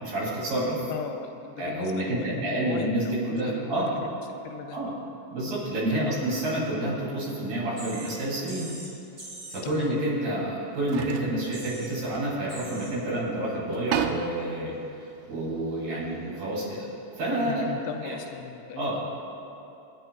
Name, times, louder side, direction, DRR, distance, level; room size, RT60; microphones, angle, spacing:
voice 1, 0.0-0.8 1.6-4.0 4.7-4.9 5.3-8.7 9.5-14.7 15.3-16.9 17.2-17.6 18.0-18.2 18.8-19.0, right 1 dB, 50° right, -6 dB, 4.5 m, -29 dB
voice 2, 0.9-4.2 4.4-4.8 5.9-6.2 9.6-10.0 17.5-18.9, left 8 dB, 85° left, 5 dB, 2.7 m, -38 dB
sound 1, 6.6-6.7 7.9-8.3 8.7-8.8 10.1-10.2 10.7-13.0 13.3-13.4 13.6-16.1, right 9 dB, 80° right, 2.7 m, -35 dB
sound 2, 7.8-8.2 8.5-8.9 9.2-9.6 11.0-11.1 11.4-11.9 12.5-13.0 13.6-13.7 18.3-18.4, right 1 dB, 30° right, 3.8 m, -42 dB
25.5 x 11.0 x 2.4 m, 2.7 s
omnidirectional pair, 5.3 m